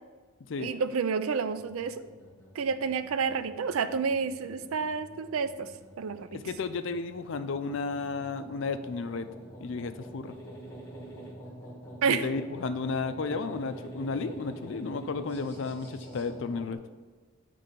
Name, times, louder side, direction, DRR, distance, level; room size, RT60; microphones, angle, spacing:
voice 1, 0.6-2.0 2.6-5.7 6.0-6.4 12.0-12.2, right 5 dB, 80° right, 12 dB, 0.4 m, -29 dB
sound 1, 1.5-16.7, right 1 dB, 10° left, 1.4 m, -47 dB
voice 2, 6.3-9.3 9.6-10.4 12.1-16.8, left 4 dB, 60° left, 10 dB, 0.4 m, -33 dB
8.4 x 3.4 x 5.2 m, 1.3 s
head